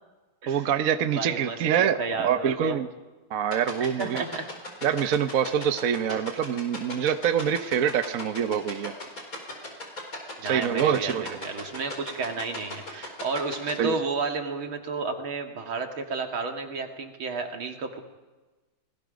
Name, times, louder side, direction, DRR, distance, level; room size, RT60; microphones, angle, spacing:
voice 1, 0.5-2.9 3.3-4.2 4.8-8.9 10.4-11.4 13.8-13.9, right 8 dB, 55° right, 10 dB, 1.1 m, -25 dB
voice 2, 1.1-2.8 3.8-4.5 10.4-18.0, right 4 dB, 75° right, 4 dB, 2.9 m, -32 dB
sound 1, 3.5-13.7, left 2 dB, 40° left, 4.8 m, -36 dB
30.0 x 20.0 x 5.2 m, 1.2 s
omnidirectional pair, 2.3 m